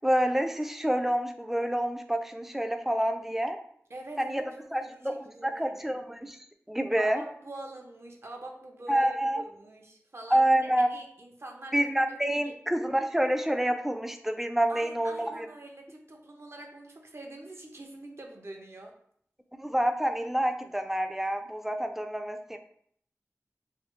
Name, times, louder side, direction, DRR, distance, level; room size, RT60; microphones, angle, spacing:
voice 1, 0.0-3.6 4.2-4.4 4.7-5.1 5.4-6.4 6.7-7.2 8.9-9.4 10.3-10.9 11.7-15.5 19.6-22.6, right 1 dB, 5° right, 6 dB, 0.3 m, -27 dB
voice 2, 3.9-5.9 7.0-11.9 12.4-12.6 14.7-18.9, right 2 dB, 55° right, 2 dB, 0.5 m, -45 dB
3.1 x 2.2 x 3.0 m, 0.65 s
wide cardioid pair, 60°, 5 cm